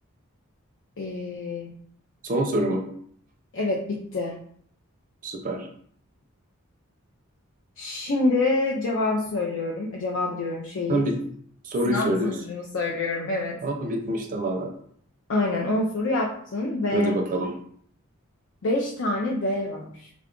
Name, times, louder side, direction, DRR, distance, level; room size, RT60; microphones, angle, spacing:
voice 1, 1.0-1.8 3.5-4.4 7.8-11.0 11.8-13.6 15.3-17.1 18.6-20.1, left 2 dB, 65° left, -1 dB, 0.5 m, -27 dB
voice 2, 2.2-2.8 5.2-5.7 10.9-11.1 11.6-12.4 13.6-14.7 16.9-17.5, right 1 dB, 40° right, 3 dB, 0.5 m, -26 dB
3.5 x 2.3 x 3.6 m, 0.62 s
head